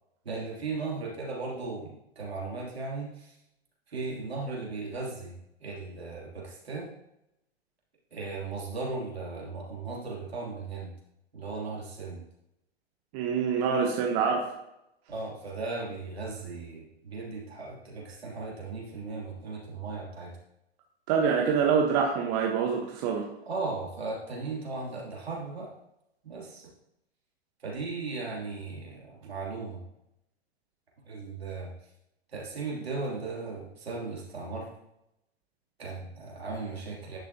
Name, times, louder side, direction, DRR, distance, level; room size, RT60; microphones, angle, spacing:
voice 1, 0.2-3.3 3.9-5.3 5.6-6.9 8.1-10.9 11.3-12.2 15.1-20.3 23.5-25.7 26.2-26.7 27.6-29.8 31.0-31.7 32.3-34.7 35.8-37.2, right 3 dB, 70° right, -3 dB, 3.1 m, -37 dB
voice 2, 13.1-14.5 21.1-23.3, right 6 dB, 35° right, 1 dB, 1.2 m, -25 dB
11.0 x 6.1 x 2.9 m, 0.83 s
figure-of-eight pair, 110°, 32 cm